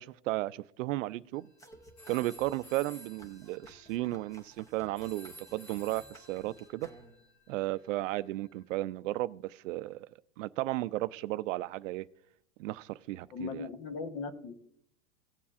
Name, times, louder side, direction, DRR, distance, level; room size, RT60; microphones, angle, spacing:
voice 1, 0.0-1.5 2.1-6.9 7.5-10.1 10.4-12.1 12.6-13.7, right 17 dB, 65° right, 0.5 m, -34 dB
sound 1, 1.4-1.6 2.0-8.6, equal, 70° left, 2.8 m, -55 dB
sound 2, 1.6-7.4, right 1 dB, 10° left, 0.6 m, -56 dB
voice 2, 13.3-14.5, left 5 dB, 45° left, 1.1 m, -38 dB
17.5 x 7.0 x 2.4 m
supercardioid pair, 145°, 41 cm